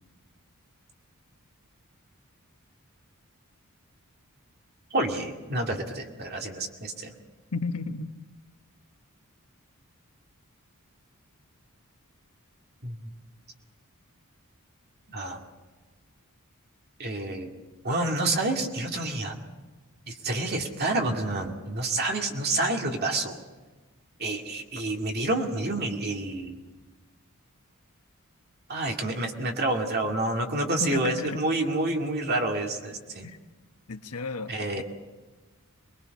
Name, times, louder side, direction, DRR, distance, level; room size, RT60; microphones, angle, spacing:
voice 1, 4.9-7.1 12.8-13.0 15.1-15.4 17.0-17.5 17.8-19.4 20.1-23.4 24.2-26.6 28.7-33.3 34.5-34.8, right 2 dB, 45° right, 2 dB, 2.2 m, -28 dB
voice 2, 7.5-8.1 30.8-31.4 33.2-33.4 33.9-34.5, left 3 dB, 85° left, 8 dB, 1.1 m, -33 dB
24.0 x 21.0 x 5.4 m, 1.3 s
head